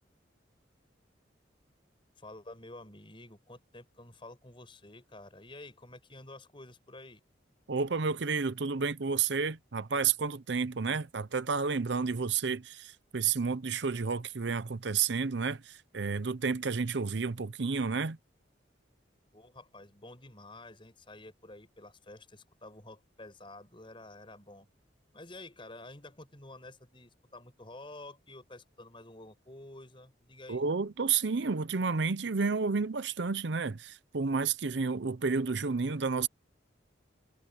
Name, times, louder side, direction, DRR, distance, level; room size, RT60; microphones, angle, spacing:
voice 1, 2.2-7.2 19.3-24.7 25.1-30.6, left 2 dB, 25° left, 5.6 m, -50 dB
voice 2, 7.7-18.2 30.5-36.3, right 5 dB, 65° right, 0.7 m, -31 dB
head